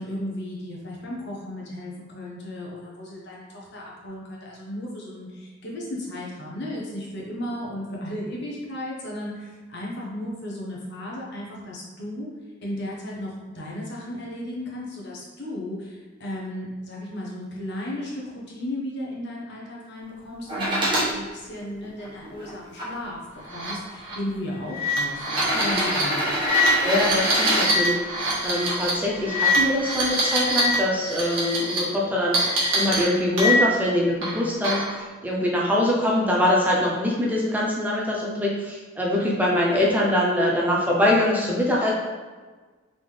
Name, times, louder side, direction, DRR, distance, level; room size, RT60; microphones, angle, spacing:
voice 1, 0.0-12.3 12.6-26.3, left 1 dB, 60° left, -4 dB, 1.1 m, -35 dB
sound 1, 20.5-21.1 21.8-22.9 23.9-24.0 25.2-27.7 29.6-29.7, right 1 dB, 25° right, 1.3 m, -25 dB
sound 2, 23.5-23.7 24.0-24.1 24.7-30.7 31.0-31.8 32.3-33.8 34.2-35.0, left 1 dB, 65° right, 1.4 m, -24 dB
voice 2, 25.5-25.9 26.8-28.2 28.4-32.4 32.7-34.9 35.2-41.9, left 1 dB, 10° right, -4 dB, 0.6 m, -23 dB
3.9 x 3.7 x 3.3 m, 1.4 s
head